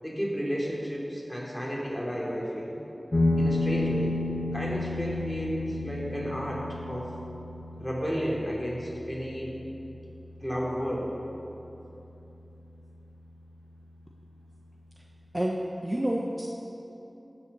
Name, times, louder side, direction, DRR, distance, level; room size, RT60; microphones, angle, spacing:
voice 1, 0.0-2.8 3.4-4.2 4.5-7.1 7.8-9.5 10.4-11.1, equal, 5° left, -5 dB, 3.5 m, -32 dB
sound 1, 3.1-12.1, left 2 dB, 60° left, 1.5 m, -32 dB
voice 2, 15.3-16.5, right 1 dB, 25° right, -1 dB, 1.1 m, -29 dB
16.0 x 7.0 x 6.8 m, 2.9 s
wide cardioid pair, 50°, 0 cm